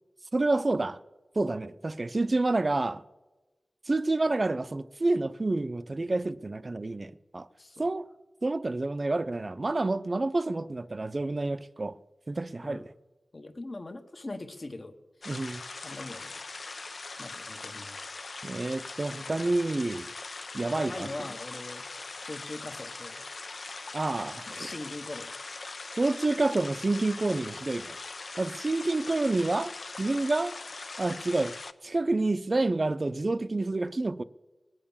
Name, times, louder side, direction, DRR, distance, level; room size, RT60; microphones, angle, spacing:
voice 1, 0.3-1.0 1.4-3.0 3.9-7.5 7.8-8.0 8.4-12.0 12.3-12.8 15.3-15.6 18.4-20.1 20.5-21.1 23.9-24.7 26.0-28.0 28.4-29.7 30.0-30.5 31.0-31.5 31.8-34.2, right 2 dB, 45° right, 0.6 m, -28 dB
voice 2, 7.6-7.9 12.6-12.8 13.3-15.0 15.8-16.4 17.2-18.0 19.1-19.3 20.7-21.9 22.2-23.3 24.5-25.3, left 2 dB, 45° left, 1.4 m, -41 dB
sound 1, 15.2-31.7, left 3 dB, 65° left, 0.7 m, -41 dB
19.5 x 8.9 x 7.2 m
cardioid pair, 50°, 0 cm